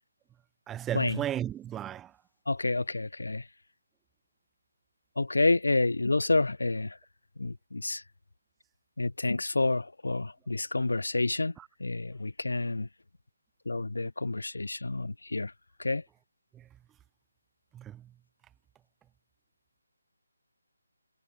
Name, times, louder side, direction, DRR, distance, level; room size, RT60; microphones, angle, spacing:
voice 1, 0.7-2.1 11.6-11.7 16.5-16.7 17.7-18.1, right 11 dB, 10° right, 0.3 m, -35 dB
voice 2, 2.5-3.5 5.2-7.0 7.4-8.0 9.0-11.5 11.8-12.9 13.7-15.5 15.8-16.0, left 2 dB, 90° left, 0.6 m, -29 dB
figure-of-eight pair, 165°, 0 cm